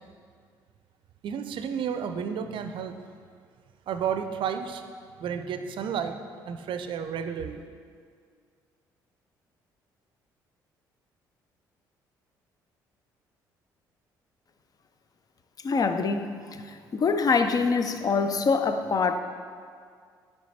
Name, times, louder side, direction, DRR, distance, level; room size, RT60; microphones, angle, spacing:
voice 1, 1.2-3.0 3.9-4.8 5.2-6.2 6.5-7.6, right 7 dB, 55° right, 8 dB, 0.5 m, -31 dB
voice 2, 15.6-19.2, left 4 dB, 35° left, 9 dB, 0.5 m, -25 dB
9.2 x 3.4 x 4.3 m, 2.1 s
hypercardioid pair, 50°, 10 cm